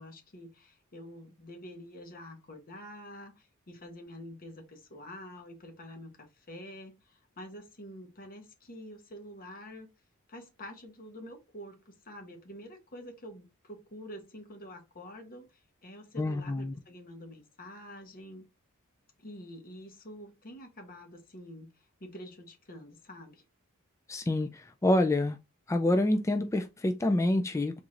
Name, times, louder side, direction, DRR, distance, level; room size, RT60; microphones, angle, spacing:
voice 1, 0.0-9.9 10.3-18.4 19.2-23.4, equal, 45° left, 1.1 m, -47 dB
voice 2, 16.2-16.7 24.1-24.5 24.8-25.4 25.7-27.8, left 1 dB, 15° left, 0.3 m, -27 dB
4.6 x 3.7 x 2.5 m
head